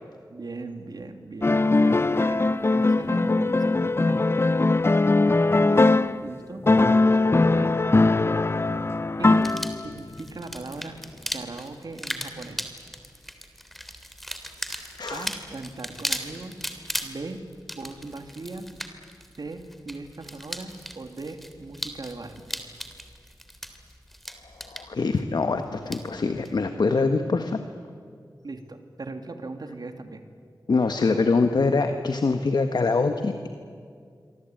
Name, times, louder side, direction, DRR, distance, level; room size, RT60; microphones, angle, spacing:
voice 1, 0.3-2.4 2.7-4.2 5.6-7.7 9.2-9.5 9.7-11.0 11.3-12.7 15.1-16.7 17.0-17.4 17.7-18.7 19.4-22.4 28.4-30.2 31.1-31.2 31.5-31.6, right 3 dB, 65° right, 6 dB, 2.6 m, -38 dB
sound 1, 1.4-6.3 6.6-10.0, left 2 dB, 35° left, 0.7 m, -21 dB
sound 2, 9.4-26.6, equal, ahead, 3.2 m, -38 dB
voice 2, 24.5-27.6 30.7-33.5, left 4 dB, 70° left, 7 dB, 1.4 m, -24 dB
27.0 x 24.0 x 9.1 m, 2.2 s
wide cardioid pair, 65°, 7 cm